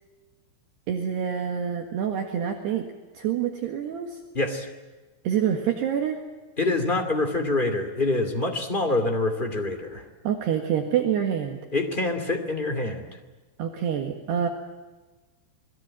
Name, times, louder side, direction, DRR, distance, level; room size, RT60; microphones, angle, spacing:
voice 1, 0.9-2.9 3.2-4.2 5.3-6.2 10.3-11.6 13.6-14.5, right 9 dB, 65° right, 3 dB, 3.4 m, -26 dB
voice 2, 4.3-4.7 6.6-10.0 11.7-13.1, left 2 dB, 35° left, 5 dB, 0.7 m, -26 dB
29.5 x 21.0 x 8.9 m, 1.2 s
omnidirectional pair, 5.8 m